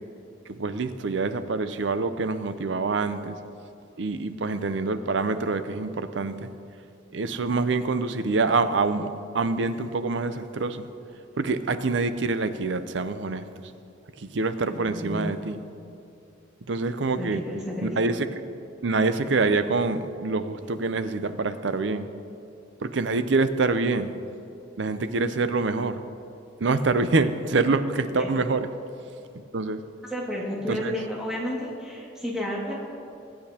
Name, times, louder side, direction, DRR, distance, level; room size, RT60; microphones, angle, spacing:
voice 1, 0.5-3.4 4.0-6.5 7.1-9.1 9.3-10.9 11.4-13.4 14.2-15.6 16.7-17.4 17.8-18.3 18.8-22.1 22.8-24.1 24.8-26.0 26.6-28.7 29.5-29.8 30.7-31.0, right 3 dB, 65° right, 11 dB, 0.6 m, -26 dB
voice 2, 14.6-15.4 17.1-18.0 28.1-28.3 30.1-32.7, equal, 5° right, -5 dB, 2.1 m, -32 dB
21.0 x 8.6 x 2.9 m, 2.6 s
head